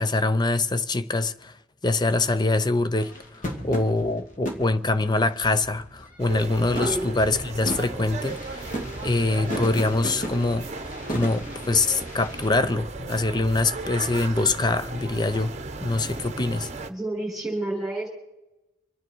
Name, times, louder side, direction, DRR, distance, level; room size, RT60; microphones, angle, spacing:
voice 1, 0.0-1.6 1.8-10.7 11.1-15.5 15.8-16.7, left 2 dB, 20° left, 0.6 m, -24 dB
sound 1, 3.0-6.3 6.6-12.5, equal, 40° left, 2.4 m, -36 dB
sound 2, 6.2-16.9, right 3 dB, 30° right, 1.0 m, -36 dB
voice 2, 16.9-18.1, right 1 dB, ahead, 6.1 m, -29 dB
26.5 x 9.6 x 4.6 m
head